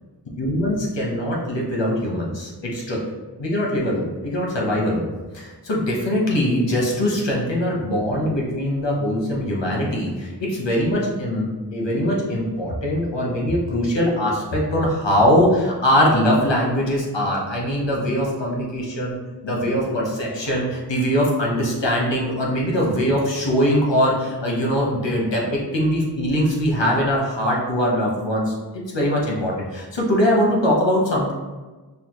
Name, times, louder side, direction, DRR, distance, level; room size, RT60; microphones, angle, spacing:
voice 1, 0.4-3.0 3.4-5.1 5.3-19.2 19.4-31.3, equal, 80° left, -2 dB, 1.1 m, -22 dB
5.6 x 2.4 x 3.0 m, 1.3 s
wide cardioid pair, 45°, 43 cm